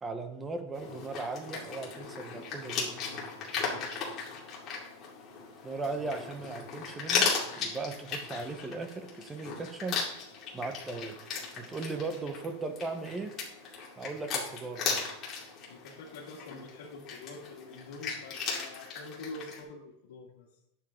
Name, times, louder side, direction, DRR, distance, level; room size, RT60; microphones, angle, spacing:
voice 1, 0.0-2.9 5.6-10.0 10.5-11.2 11.6-13.3 14.0-15.0, right 3 dB, 10° right, 7 dB, 1.0 m, -38 dB
sound 1, 0.7-19.6, left 5 dB, 30° left, 2.6 m, -37 dB
voice 2, 3.5-3.9 15.7-20.5, left 3 dB, 90° left, -4 dB, 2.0 m, -46 dB
10.5 x 7.5 x 3.7 m, 0.79 s
supercardioid pair, 160°, 0 cm